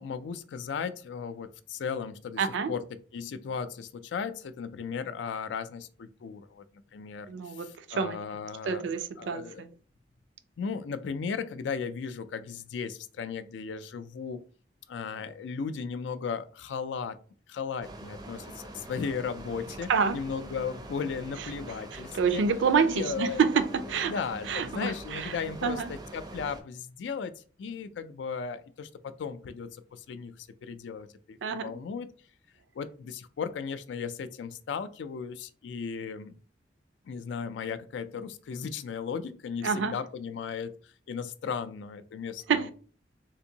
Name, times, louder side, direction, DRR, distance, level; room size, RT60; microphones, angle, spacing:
voice 1, 0.0-2.9 3.1-6.6 6.9-8.8 9.2-9.6 10.6-14.4 14.9-17.2 17.5-22.4 22.8-23.4 24.1-32.1 32.7-36.3 37.0-42.7, left 6 dB, 80° left, 0.3 m, -36 dB
voice 2, 2.4-2.7 7.3-8.1 8.6-9.7 19.9-20.2 21.9-24.1 24.5-25.4 25.6-25.9 31.4-31.8 39.6-40.0 42.5-42.7, right 6 dB, 90° right, 0.3 m, -27 dB
sound 1, 17.8-26.6, right 1 dB, 20° right, 0.4 m, -44 dB
3.5 x 2.6 x 2.7 m
head